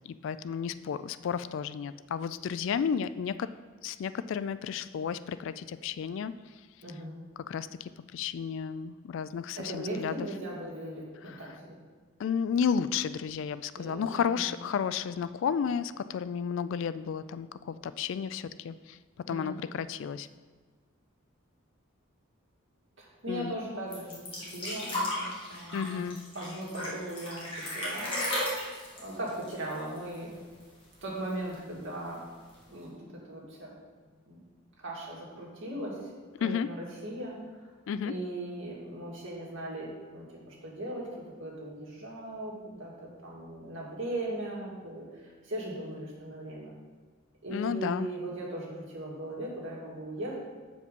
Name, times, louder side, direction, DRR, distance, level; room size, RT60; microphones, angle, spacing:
voice 1, 0.1-3.5 3.8-6.3 7.5-10.3 11.3-11.4 12.2-19.0 19.3-20.3 23.3-23.5 25.7-26.2 36.4-36.7 37.9-38.1 47.5-48.1, left 7 dB, 65° left, 14 dB, 0.3 m, -32 dB
voice 2, 6.8-7.2 9.6-11.8 13.8-14.5 19.3-19.6 23.0-24.2 24.5-26.1 26.3-28.3 28.9-30.3 31.0-32.3 32.7-33.7 34.3-34.4 34.8-36.1 36.4-37.4 37.6-37.7 38.1-46.7 47.4-50.4, right 1 dB, 65° right, -3 dB, 2.1 m, -38 dB
sound 1, 23.9-30.3 30.6-30.7 31.0-31.7 32.5-32.6, left 1 dB, 25° left, 2.1 m, -35 dB
8.0 x 5.0 x 5.2 m, 1.5 s
head